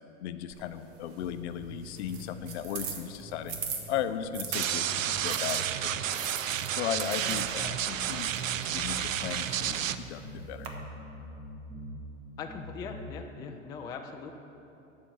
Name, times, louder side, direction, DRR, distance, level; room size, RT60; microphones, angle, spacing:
voice 1, 0.2-3.6 3.9-6.2 6.7-8.3 8.7-9.8 10.1-10.7, left 9 dB, 60° left, 11 dB, 0.6 m, -36 dB
sound 1, 0.5-4.7 5.3-10.7, right 6 dB, 35° right, 1.3 m, -42 dB
sound 2, 1.2-3.0 3.5-6.0 6.5-9.0 9.5-12.0 12.4-13.1, right 1 dB, 5° right, 1.5 m, -44 dB
sound 3, 4.5-10.0, right 10 dB, 85° right, 0.5 m, -31 dB
voice 2, 12.4-14.3, left 5 dB, 10° left, 3 dB, 0.3 m, -40 dB
12.0 x 4.7 x 7.1 m, 2.9 s
hypercardioid pair, 105°, 38 cm